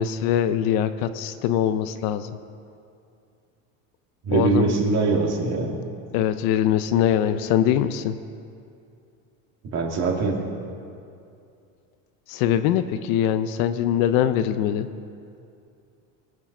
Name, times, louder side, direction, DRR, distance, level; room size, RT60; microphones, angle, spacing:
voice 1, 0.0-2.4 4.3-4.7 6.1-8.2 12.3-14.9, left 10 dB, 55° left, 11 dB, 0.8 m, -22 dB
voice 2, 4.2-5.8 9.6-10.4, right 3 dB, 40° right, 0 dB, 2.5 m, -22 dB
21.0 x 8.5 x 6.1 m, 2.5 s
supercardioid pair, 145°, 41 cm